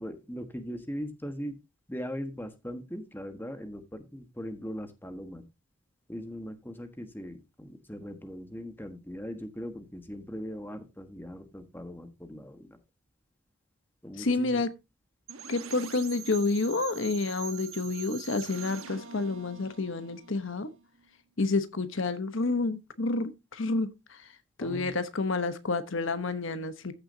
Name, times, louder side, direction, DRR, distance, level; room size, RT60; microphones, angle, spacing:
voice 1, 0.0-1.6 1.9-5.4 6.1-12.8 14.0-14.6 24.6-24.9, equal, 10° left, 1.4 m, -40 dB
voice 2, 14.2-14.7 15.5-20.7 21.4-24.3 24.6-26.9, left 3 dB, 70° left, 1.0 m, -29 dB
sound 1, 15.3-21.1, right 8 dB, 85° right, 1.3 m, -44 dB
14.5 x 6.9 x 2.7 m
head